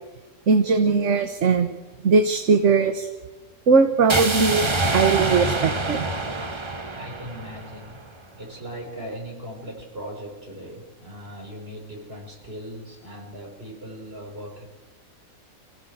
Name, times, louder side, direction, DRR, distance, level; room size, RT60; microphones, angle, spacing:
voice 1, 0.5-1.8 2.0-3.1 3.7-6.1, right 4 dB, 60° right, 8 dB, 1.5 m, -19 dB
sound 1, 4.1-8.1, right 2 dB, 20° right, 1.1 m, -26 dB
voice 2, 6.9-8.0 8.4-14.7, equal, 40° right, 1 dB, 5.4 m, -38 dB
26.0 x 16.5 x 8.0 m, 1.2 s
omnidirectional pair, 1.5 m